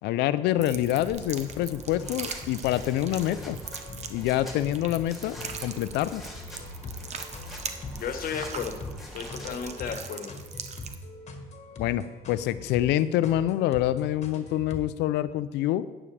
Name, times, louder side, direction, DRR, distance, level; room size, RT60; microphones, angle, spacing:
voice 1, 0.0-3.6 4.1-5.4 5.6-6.2 11.8-15.8, left 13 dB, 85° left, 15 dB, 0.5 m, -26 dB
sound 1, 0.6-10.9, right 6 dB, 40° right, 0.9 m, -41 dB
sound 2, 0.7-14.9, left 2 dB, 40° left, 1.4 m, -43 dB
sound 3, 1.1-9.7, equal, ahead, 2.5 m, -44 dB
voice 2, 8.0-8.8 9.1-10.3, left 7 dB, 60° left, 6 dB, 1.2 m, -33 dB
12.0 x 8.9 x 3.3 m, 1.3 s
cardioid pair, 110°, 17 cm